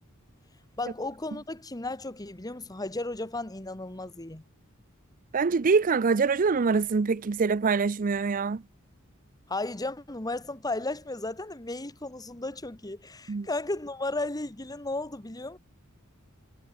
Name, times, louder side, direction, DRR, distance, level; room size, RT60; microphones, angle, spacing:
voice 1, 0.8-4.4 9.5-15.6, left 2 dB, 20° left, 1.5 m, -34 dB
voice 2, 5.3-8.6 13.3-13.5, right 4 dB, 40° right, 0.5 m, -24 dB
head